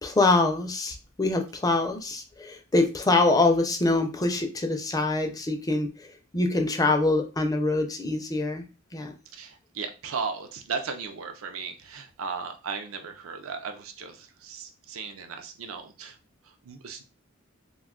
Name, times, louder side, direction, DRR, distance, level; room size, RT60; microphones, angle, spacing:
voice 1, 0.0-6.1 6.3-8.7 8.9-9.1, left 2 dB, 15° left, 5 dB, 0.4 m, -24 dB
voice 2, 9.3-16.2 16.4-17.0, right 5 dB, 75° right, 6 dB, 0.5 m, -36 dB
2.5 x 2.2 x 3.6 m, 0.31 s
head